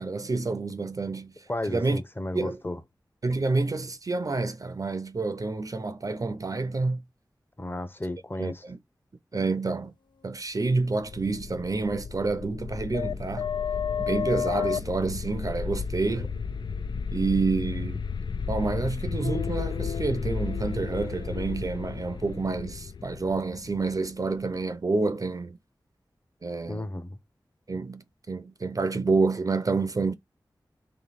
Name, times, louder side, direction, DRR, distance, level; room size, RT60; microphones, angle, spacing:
voice 1, 0.0-1.3 1.7-2.0 2.3-2.6 3.2-7.0 8.4-8.8 9.3-9.9 10.2-13.5 14.0-16.3 17.1-18.1 18.5-25.6 26.4-26.8 27.7-30.1, right 3 dB, 45° right, 0.6 m, -28 dB
voice 2, 1.5-2.8 7.6-8.6 26.7-27.2, left 1 dB, 25° left, 0.9 m, -33 dB
sound 1, 10.9-24.6, left 6 dB, 70° left, 0.4 m, -32 dB
3.2 x 3.2 x 4.1 m
cardioid pair, 50°, 8 cm